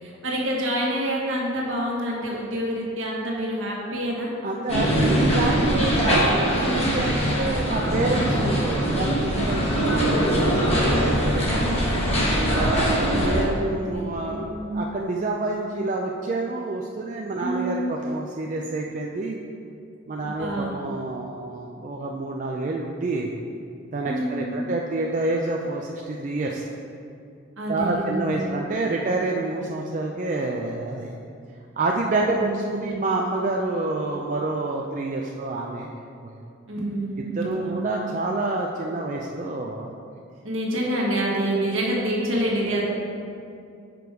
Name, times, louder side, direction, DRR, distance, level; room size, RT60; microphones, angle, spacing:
voice 1, 0.0-4.3 12.7-14.9 17.4-17.9 20.2-20.8 24.0-24.7 27.6-28.6 32.3-33.0 36.7-37.9 40.4-43.0, right 1 dB, 70° right, -3 dB, 1.4 m, -28 dB
voice 2, 4.4-10.3 10.9-11.7 12.5-19.4 20.1-23.3 23.9-26.7 27.7-31.2 31.8-35.9 36.2-36.3 37.2-39.9, right 2 dB, 40° right, 0 dB, 0.3 m, -28 dB
sound 1, 4.7-13.4, equal, 30° left, 1.1 m, -22 dB
6.1 x 5.1 x 4.6 m, 2.5 s
head